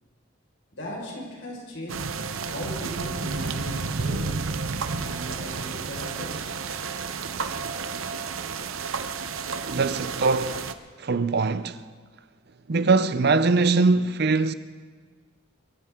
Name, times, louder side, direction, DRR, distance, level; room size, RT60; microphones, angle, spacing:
voice 1, 0.7-2.1 2.5-4.5 5.0-6.5, left 1 dB, 70° left, 4.8 m, -38 dB
sound 1, 1.9-10.7, right 4 dB, 85° right, 0.7 m, -31 dB
voice 2, 9.6-10.6 11.0-11.8 12.7-14.5, right 3 dB, 50° right, 0.6 m, -22 dB
23.0 x 14.0 x 3.7 m
head